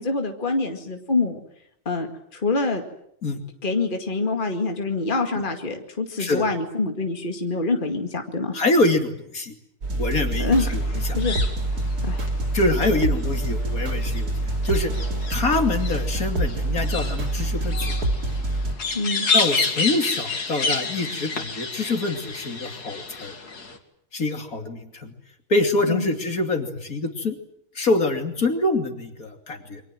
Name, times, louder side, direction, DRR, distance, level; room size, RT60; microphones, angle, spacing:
voice 1, 0.0-1.4 1.9-2.1 2.3-2.8 3.6-8.5 10.4-10.8 11.1-11.3 12.0-12.3 18.9-19.3 25.9-26.1, left 3 dB, 35° left, 4 dB, 2.4 m, -25 dB
voice 2, 8.5-9.5 9.9-11.2 12.5-14.9 15.3-18.1 19.3-23.3 24.1-25.1 25.5-27.4 27.7-29.8, left 2 dB, 65° left, 5 dB, 3.2 m, -25 dB
sound 1, 9.8-18.7, right 1 dB, 80° right, 3.5 m, -26 dB
sound 2, 10.7-23.8, left 4 dB, 90° left, 3.0 m, -30 dB
28.5 x 24.5 x 7.7 m, 0.73 s
omnidirectional pair, 1.6 m